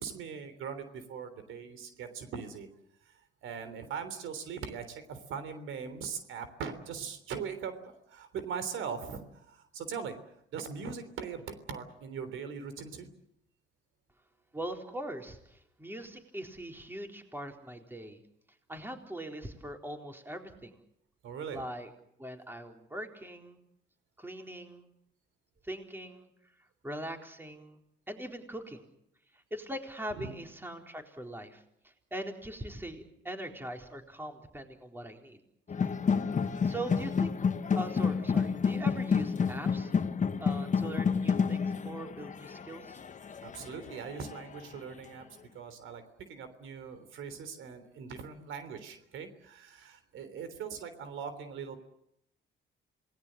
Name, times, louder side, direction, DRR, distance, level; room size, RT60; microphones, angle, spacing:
voice 1, 0.0-2.7 3.1-3.2 3.4-10.2 10.5-13.1 21.2-21.6 30.1-30.3 43.4-45.2 45.5-46.0 46.3-51.8, right 6 dB, 80° right, 10 dB, 3.4 m, -40 dB
voice 2, 14.5-18.2 18.7-20.8 21.5-21.9 22.2-23.6 24.2-24.9 25.6-26.3 26.8-27.8 28.1-28.9 29.3-35.4 35.8-36.0 36.6-37.4 37.7-39.9 40.4-43.0, right 1 dB, 10° right, 3 dB, 4.1 m, -41 dB
sound 1, 35.7-44.6, left 6 dB, 40° left, 1.3 m, -30 dB
27.5 x 19.5 x 7.6 m, 0.76 s
cardioid pair, 90°, 20 cm